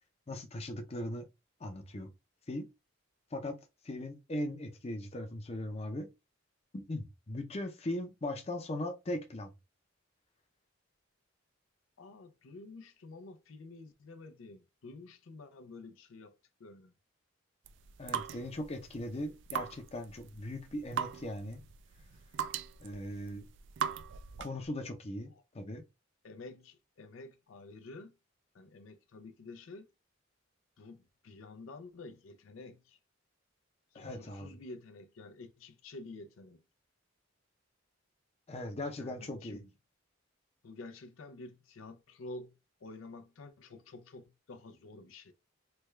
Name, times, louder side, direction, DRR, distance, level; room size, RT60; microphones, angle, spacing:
voice 1, 0.3-1.2 1.6-2.1 2.5-2.7 3.3-3.6 3.8-6.1 6.7-9.5 18.0-21.6 22.8-23.5 24.4-25.8 33.9-34.6 38.5-39.6, left 1 dB, 30° left, 0.6 m, -39 dB
voice 2, 12.0-16.3 16.6-16.9 26.2-28.1 28.5-29.9 30.8-33.0 33.9-36.6 39.0-39.7 40.6-45.3, left 2 dB, 85° left, 0.5 m, -49 dB
sound 1, 17.6-24.7, right 8 dB, 60° right, 0.3 m, -40 dB
3.3 x 2.2 x 3.1 m
head